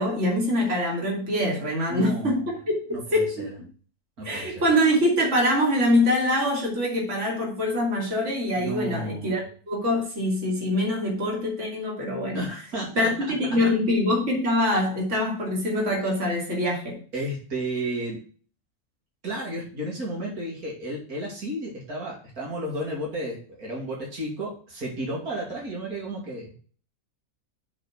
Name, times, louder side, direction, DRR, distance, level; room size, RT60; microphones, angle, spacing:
voice 1, 0.0-3.5 4.2-12.5 12.9-17.0, left 1 dB, 50° right, -2 dB, 2.8 m, -24 dB
voice 2, 1.9-2.4 2.9-3.5 4.2-4.5 8.5-9.4 12.3-13.1 17.1-18.2 19.2-26.5, right 1 dB, 80° right, -2 dB, 2.9 m, -32 dB
7.4 x 4.2 x 5.9 m, 0.41 s
omnidirectional pair, 1.6 m